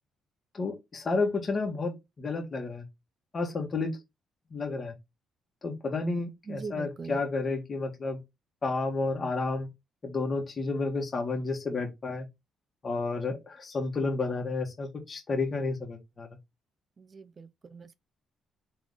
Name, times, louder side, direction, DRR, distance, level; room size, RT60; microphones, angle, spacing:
voice 1, 0.5-2.8 3.3-4.0 4.5-4.9 5.6-8.2 8.6-9.7 10.0-12.3 12.8-16.3, left 3 dB, 40° left, 1.3 m, -31 dB
voice 2, 6.5-7.2 17.0-17.9, right 5 dB, 40° right, 0.4 m, -41 dB
3.7 x 3.4 x 3.5 m
cardioid pair, 90°, 0 cm